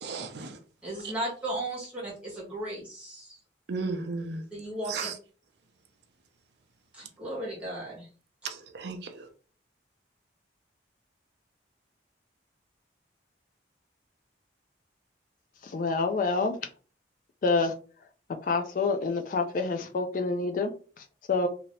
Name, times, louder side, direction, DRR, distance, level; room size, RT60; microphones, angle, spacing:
voice 1, 0.0-0.6 3.7-4.4 4.9-5.1 8.4-9.3, right 4 dB, 65° right, 0.5 m, -34 dB
voice 2, 0.8-3.4 4.5-5.1 6.9-8.1, right 1 dB, 5° right, 1.3 m, -36 dB
voice 3, 15.6-16.6 17.4-17.7 18.5-21.5, left 3 dB, 45° left, 0.3 m, -27 dB
2.7 x 2.6 x 3.1 m
head